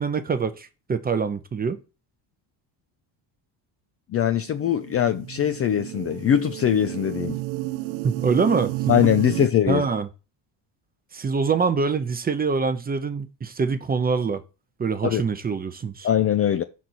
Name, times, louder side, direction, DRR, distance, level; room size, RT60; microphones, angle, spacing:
voice 1, 0.0-1.8 8.0-8.9 9.7-10.1 11.1-14.4 14.8-16.1, right 5 dB, 20° right, 0.5 m, -24 dB
voice 2, 4.1-7.4 8.9-9.8 15.0-15.2 16.0-16.6, left 10 dB, 35° left, 0.4 m, -21 dB
sound 1, 4.4-9.5, right 20 dB, 80° right, 0.6 m, -31 dB
5.1 x 4.2 x 6.1 m
cardioid pair, 135°, 47 cm